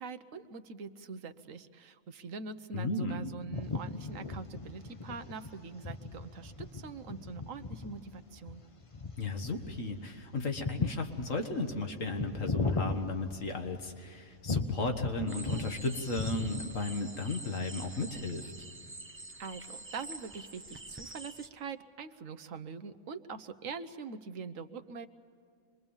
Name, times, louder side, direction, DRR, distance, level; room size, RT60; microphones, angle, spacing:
voice 1, 0.0-8.6 19.4-25.1, right 5 dB, 75° right, 10 dB, 1.3 m, -43 dB
voice 2, 2.7-3.3 9.2-18.5, left 3 dB, 75° left, 4 dB, 2.0 m, -35 dB
sound 1, 3.5-13.9 14.5-16.9, left 3 dB, 30° left, 0.9 m, -37 dB
sound 2, 15.3-21.5, right 2 dB, 15° right, 0.5 m, -46 dB
26.0 x 22.0 x 7.2 m, 2.1 s
omnidirectional pair, 1.4 m